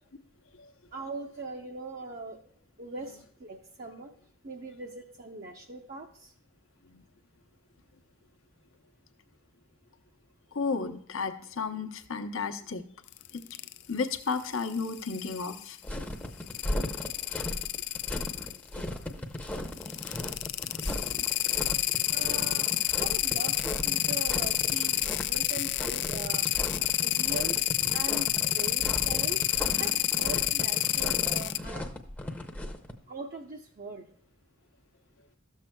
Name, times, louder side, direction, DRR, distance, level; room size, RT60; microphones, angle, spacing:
voice 1, 0.9-2.4 2.8-4.1 4.4-6.3 22.1-22.7 23.0-26.5 27.0-29.4 29.8-31.9 33.1-34.1, right 3 dB, 45° right, 0 dB, 0.6 m, -41 dB
voice 2, 10.5-12.8 13.3-13.4 13.9-15.8 20.6-20.7, left 4 dB, 75° left, 6 dB, 0.8 m, -33 dB
sound 1, 13.1-13.8 14.4-15.7 16.4-18.6 19.6-31.6, left 16 dB, 55° left, 0.3 m, -29 dB
sound 2, 15.8-32.9, left 1 dB, 10° left, 0.6 m, -36 dB
13.0 x 7.3 x 2.2 m, 0.62 s
head